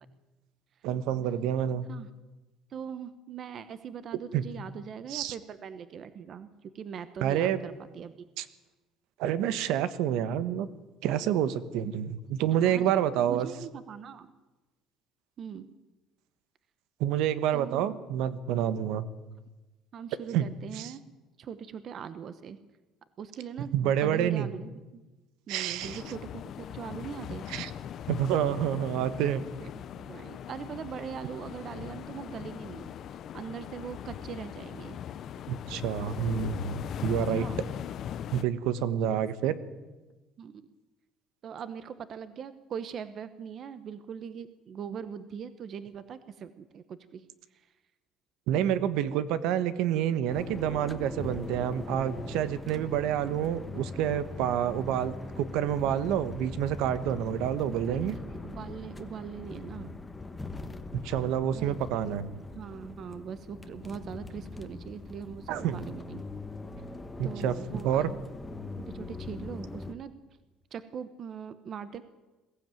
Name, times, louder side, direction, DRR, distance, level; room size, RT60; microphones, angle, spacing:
voice 1, 0.8-1.9 4.3-4.4 5.1-5.3 7.2-7.6 8.4-8.5 9.2-10.7 11.0-13.5 17.0-19.0 20.3-20.4 20.8-20.9 23.6-24.5 25.5-26.0 27.5-27.7 28.1-29.4 35.5-37.4 38.3-39.6 48.5-58.1 61.0-62.3 65.5-65.8 67.2-67.5 67.8-68.1, right 10 dB, 70° right, 14 dB, 1.3 m, -28 dB
voice 2, 2.7-8.3 12.5-12.9 13.2-14.3 15.4-15.7 17.5-18.0 19.9-21.0 21.4-22.6 23.2-25.0 25.5-27.5 29.6-32.9 33.3-35.0 37.1-37.6 40.4-40.7 41.4-47.7 57.9-60.0 61.5-61.7 62.0-66.2 66.8-66.9 67.2-68.3 68.8-70.1 70.7-72.0, right 7 dB, 35° right, 13 dB, 0.9 m, -41 dB
sound 1, 25.8-38.4, left 9 dB, 40° left, 0.8 m, -39 dB
sound 2, 50.3-69.9, left 2 dB, 10° left, 1.2 m, -41 dB
22.0 x 15.5 x 9.2 m, 1.1 s
cardioid pair, 165°, 0 cm